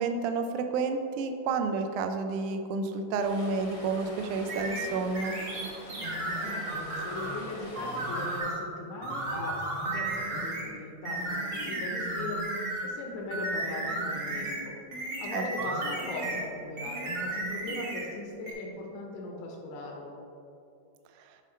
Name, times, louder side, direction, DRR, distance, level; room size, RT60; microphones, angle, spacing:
voice 1, 0.0-5.4 15.3-15.4, right 4 dB, 80° right, 6 dB, 1.9 m, -30 dB
Stream, 3.2-8.4, left 1 dB, 50° left, 1.0 m, -44 dB
sound 1, 4.5-7.4 7.8-8.7 9.0-10.7 11.1-13.0 13.3-16.5 16.8-18.1 18.5-18.6, right 2 dB, 50° right, 1.4 m, -34 dB
voice 2, 6.4-14.8 15.2-20.1, left 2 dB, 75° left, -1 dB, 2.1 m, -39 dB
9.2 x 5.1 x 3.2 m, 2.6 s
omnidirectional pair, 3.8 m